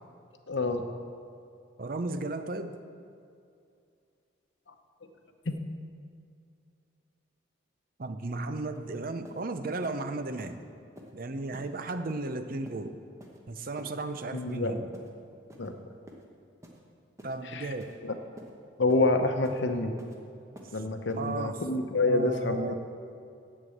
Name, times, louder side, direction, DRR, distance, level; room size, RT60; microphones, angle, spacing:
voice 1, 0.5-0.8 5.5-5.6 14.3-14.8 15.6-15.7 17.4-17.7 18.0-18.2 18.8-19.9 20.7-22.7, left 2 dB, 65° left, 6 dB, 0.9 m, -27 dB
voice 2, 1.8-2.8 8.0-10.6 11.1-13.0 13.5-14.9 17.2-17.9 21.2-21.6 22.0-22.7, right 2 dB, 45° right, 9 dB, 0.6 m, -34 dB
sound 1, 8.7-8.8 9.2-9.4 9.8-10.0 10.4-10.5 11.0-11.1 11.5-11.7 12.1-12.3 12.6-12.8 13.2-13.4 13.8-13.9 14.4-14.5 14.9-15.1 15.5-15.7 16.1-16.2 16.6-16.8 17.2-17.4 17.8-17.9 18.4-18.5 18.9-19.0 19.4-19.6 20.0-20.2 20.5-20.7 21.1-21.2, equal, 15° right, 1.1 m, -49 dB
8.0 x 7.6 x 8.4 m, 2.5 s
head